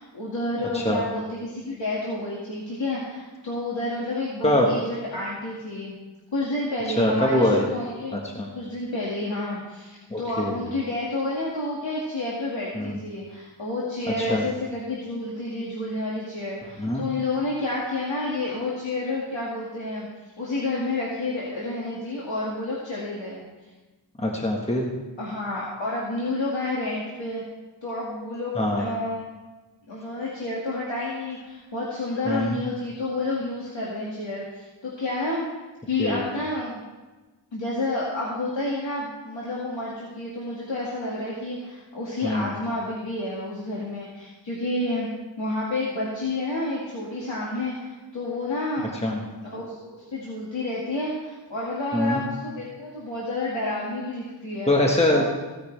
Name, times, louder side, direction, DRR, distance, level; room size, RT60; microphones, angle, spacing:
voice 1, 0.0-6.0 6.3-8.2 8.5-20.1 20.4-23.4 25.2-27.4 27.8-29.3 29.9-35.5 35.9-36.8 37.5-45.1 45.4-49.0 49.4-54.7 55.1-55.2, left 2 dB, 85° left, -6 dB, 2.2 m, -30 dB
voice 2, 7.0-7.7 8.1-8.5 10.1-10.5 12.7-13.0 14.2-14.4 16.8-17.0 24.2-24.9 28.6-28.8 32.3-32.6 36.0-36.2 42.2-42.5 49.0-49.2 51.9-52.2 54.7-55.2, left 1 dB, 15° left, -1 dB, 1.5 m, -23 dB
16.0 x 9.4 x 3.4 m, 1.2 s
wide cardioid pair, 70°, 44 cm